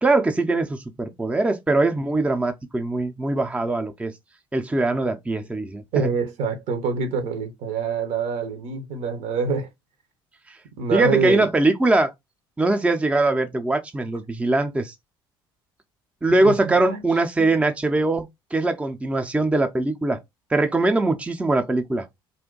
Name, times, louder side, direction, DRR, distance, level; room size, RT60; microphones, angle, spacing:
voice 1, 0.0-4.1 4.5-6.1 10.9-12.1 12.6-14.9 16.2-20.2 20.5-22.1, right 2 dB, 10° right, 0.5 m, -22 dB
voice 2, 5.9-9.7 10.8-11.5 16.4-17.0 17.4-17.5, right 5 dB, 65° right, 0.8 m, -26 dB
2.5 x 2.2 x 3.7 m
hypercardioid pair, 65°, 12 cm